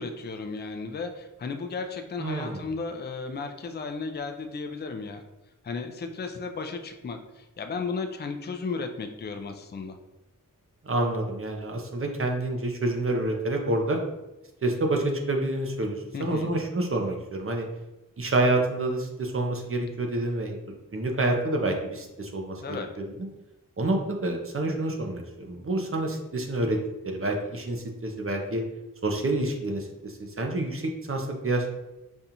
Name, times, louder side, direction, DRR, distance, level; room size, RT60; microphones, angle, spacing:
voice 1, 0.0-5.2 5.6-10.0 16.1-16.5 22.6-22.9, left 4 dB, 30° left, 6 dB, 0.4 m, -34 dB
voice 2, 2.2-2.7 10.8-14.0 14.6-17.7 18.2-20.6 20.9-23.3 23.8-26.8 27.0-28.6 29.0-31.7, right 2 dB, 40° right, 2 dB, 0.6 m, -28 dB
5.3 x 2.4 x 2.8 m, 0.99 s
wide cardioid pair, 80°, 34 cm